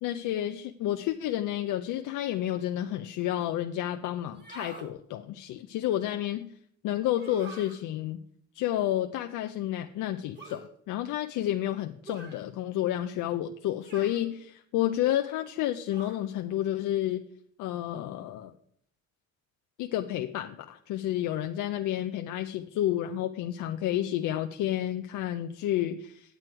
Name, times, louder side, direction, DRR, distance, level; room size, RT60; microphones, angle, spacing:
voice 1, 0.0-6.5 6.8-8.2 8.5-17.2 17.6-18.5 19.8-26.4, left 12 dB, 85° left, 7 dB, 0.5 m, -30 dB
sound 1, 4.3-4.9 7.1-7.8 10.4-10.7 12.1-12.4 13.8-14.3 15.9-16.3, right 3 dB, 35° right, 2.1 m, -45 dB
9.1 x 7.6 x 4.5 m, 0.66 s
cardioid pair, 90°, 30 cm